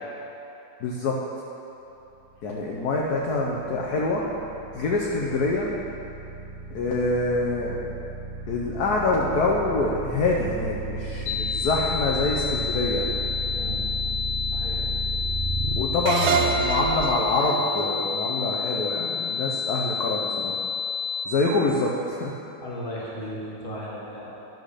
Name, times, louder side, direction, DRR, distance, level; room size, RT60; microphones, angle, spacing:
voice 1, 0.8-1.2 2.4-4.2 4.7-5.7 6.7-7.8 8.5-13.1 15.8-20.6 21.2-22.3, left 2 dB, 65° left, -2 dB, 1.1 m, -25 dB
sound 1, 2.6-15.8, right 3 dB, 40° right, 0.9 m, -33 dB
sound 2, 11.3-21.3, left 6 dB, 85° left, 1.5 m, -29 dB
voice 2, 13.5-13.9 14.5-14.8 22.6-24.4, equal, 30° left, -5 dB, 1.4 m, -35 dB
sound 3, 16.1-19.4, right 5 dB, 80° right, 0.9 m, -28 dB
10.5 x 4.1 x 6.5 m, 3.0 s
omnidirectional pair, 2.2 m